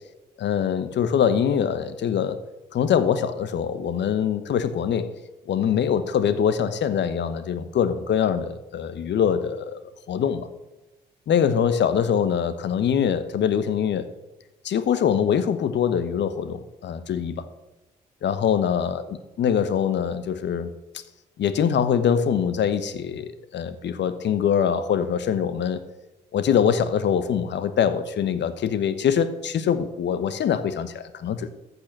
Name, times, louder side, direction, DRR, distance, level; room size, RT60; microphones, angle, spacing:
voice 1, 0.4-2.4 2.7-5.1 5.5-9.8 10.1-10.5 11.3-14.1 14.6-17.4 18.2-20.7 21.4-25.8 26.3-31.5, left 8 dB, 60° left, 13 dB, 1.0 m, -23 dB
14.5 x 5.5 x 6.1 m, 1.0 s
hypercardioid pair, 45°, 21 cm